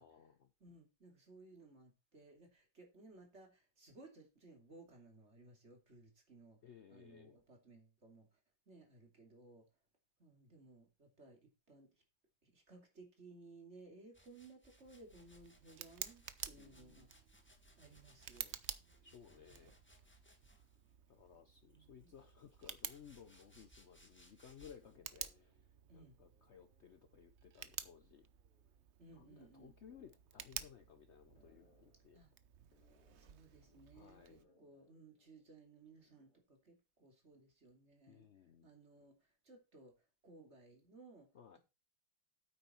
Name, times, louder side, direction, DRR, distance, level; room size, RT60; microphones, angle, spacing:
voice 1, 0.0-0.5 6.6-7.4 16.5-17.1 19.0-19.7 21.1-25.6 25.9-28.3 29.1-32.2 33.9-34.4 38.1-38.7 41.3-41.6, left 8 dB, 80° left, 10 dB, 0.6 m, -59 dB
voice 2, 0.6-6.6 6.9-8.4 8.7-9.7 10.2-11.9 12.4-17.1 17.8-18.6 19.3-19.7 21.7-22.2 25.9-26.2 29.0-29.7 32.1-32.3 33.2-38.3 38.6-39.9 40.2-41.3, right 3 dB, 35° right, 3 dB, 3.0 m, -60 dB
sound 1, 14.1-20.9 21.7-25.0, equal, 5° left, 1.4 m, -67 dB
Tick, 14.8-34.4, right 9 dB, 80° right, 0.6 m, -52 dB
sound 2, 24.8-27.3 28.1-29.1 29.8-36.4, left 3 dB, 55° left, 3.5 m, -75 dB
8.9 x 8.5 x 4.4 m, 0.29 s
omnidirectional pair, 2.1 m